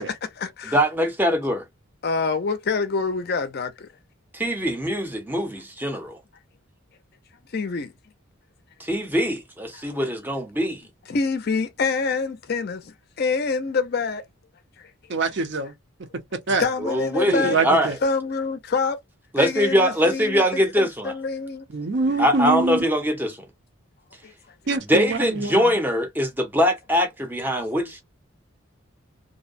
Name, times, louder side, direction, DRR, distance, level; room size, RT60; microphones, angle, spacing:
voice 1, 0.1-0.8 2.0-3.9 7.5-7.9 9.7-10.0 11.1-14.2 14.8-14.9 16.6-17.6 18.0-19.0 19.4-21.7 24.2-24.3 27.8-27.9, left 4 dB, 45° left, 0.4 m, -26 dB
voice 2, 0.7-1.6 4.3-6.2 8.8-10.8 16.8-17.9 19.3-21.1 22.2-23.4 24.9-28.0, equal, 10° right, 0.5 m, -22 dB
voice 3, 15.1-15.7 16.5-16.7 17.4-18.0 21.7-22.8 24.7-25.7, right 3 dB, 55° right, 0.5 m, -24 dB
2.6 x 2.0 x 2.4 m
head